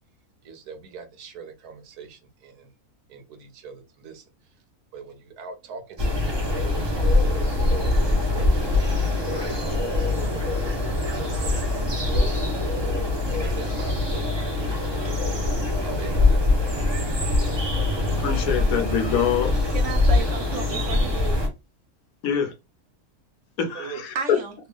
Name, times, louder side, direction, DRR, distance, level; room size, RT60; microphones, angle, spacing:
voice 1, 0.4-2.7 3.1-4.2 4.9-8.6 9.3-10.5 11.3-11.6 12.1-12.4 13.4-14.3 14.7-14.8 15.2-17.1 18.3-18.4 23.7-24.0, right 5 dB, 80° right, 1.3 m, -42 dB
sound 1, 6.0-21.5, left 2 dB, 25° right, 0.7 m, -23 dB
voice 2, 18.2-19.6 22.2-22.5 23.6-24.1, left 7 dB, 70° left, 1.1 m, -25 dB
voice 3, 19.7-21.4 24.1-24.5, right 5 dB, 55° right, 1.1 m, -33 dB
3.4 x 2.3 x 3.4 m
omnidirectional pair, 1.6 m